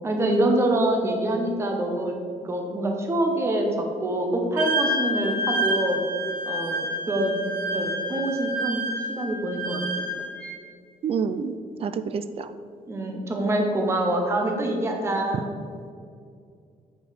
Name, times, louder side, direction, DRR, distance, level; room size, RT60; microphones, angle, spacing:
voice 1, 0.0-2.2 2.4-6.1 6.5-8.8 9.2-9.8 10.2-10.3 12.9-15.5, right 1 dB, 20° right, 2 dB, 0.7 m, -25 dB
Wind instrument woodwind instrument, 4.6-10.5, right 1 dB, 80° right, 1.7 m, -29 dB
voice 2, 11.0-11.5 11.8-12.5, right 6 dB, 40° right, 12 dB, 0.4 m, -27 dB
7.5 x 4.9 x 4.9 m, 2.3 s
wide cardioid pair, 180°, 14 cm